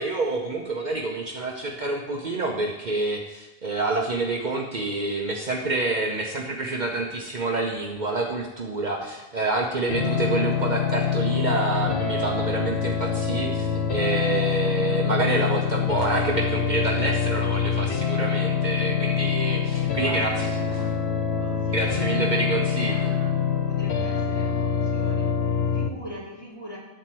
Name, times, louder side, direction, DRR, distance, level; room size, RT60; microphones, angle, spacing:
voice 1, 0.0-20.3 21.7-23.1, right 2 dB, 50° right, 0 dB, 1.0 m, -27 dB
sound 1, 9.9-25.9, left 7 dB, 80° left, 1.0 m, -25 dB
voice 2, 19.6-21.0 21.4-26.8, equal, 25° left, -6 dB, 2.9 m, -43 dB
10.0 x 4.3 x 7.6 m, 1.0 s
omnidirectional pair, 1.1 m